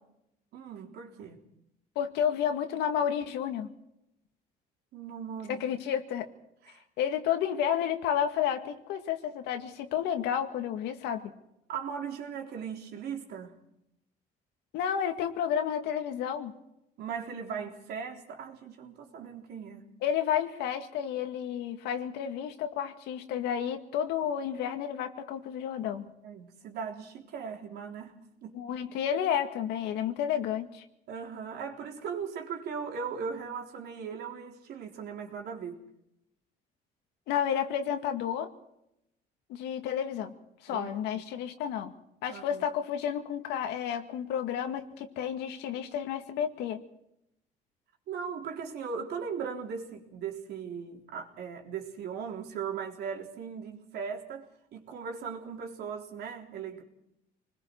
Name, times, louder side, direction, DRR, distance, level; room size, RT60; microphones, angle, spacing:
voice 1, 0.5-1.4 4.9-5.8 6.6-6.8 11.7-13.6 17.0-19.8 26.2-28.1 28.4-28.6 31.1-35.8 40.7-41.3 42.3-42.6 48.1-56.8, right 6 dB, 75° right, 2 dB, 3.7 m, -38 dB
voice 2, 2.0-3.7 5.5-6.3 7.0-11.3 14.7-16.5 20.0-26.1 28.5-30.8 37.3-38.5 39.5-40.3 40.6-41.9 42.2-46.8, left 9 dB, 90° left, 6 dB, 2.1 m, -31 dB
27.0 x 21.0 x 4.7 m, 0.81 s
cardioid pair, 110°, 17 cm